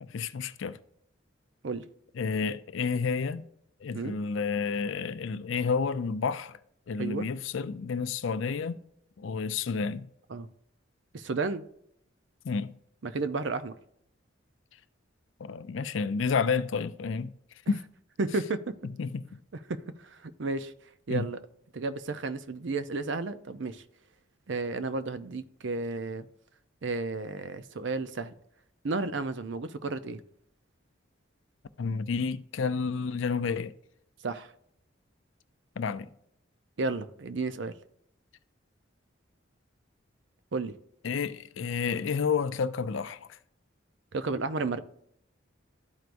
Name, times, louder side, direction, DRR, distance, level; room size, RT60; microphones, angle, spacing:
voice 1, 0.0-0.8 2.2-3.5 3.8-6.6 6.9-8.8 9.2-10.1 12.4-12.7 15.4-17.3 17.7-17.8 18.8-19.4 21.1-21.3 31.8-33.7 35.8-36.1 41.0-43.4, left 5 dB, 75° left, 0.4 m, -30 dB
voice 2, 11.1-11.6 13.0-13.8 18.2-18.6 19.7-20.7 21.1-21.4 21.7-23.8 24.5-26.3 26.8-28.3 28.8-30.2 34.2-34.5 36.8-37.7 40.5-40.8 44.1-44.8, right 3 dB, 65° right, 0.5 m, -32 dB
13.0 x 4.6 x 2.6 m
head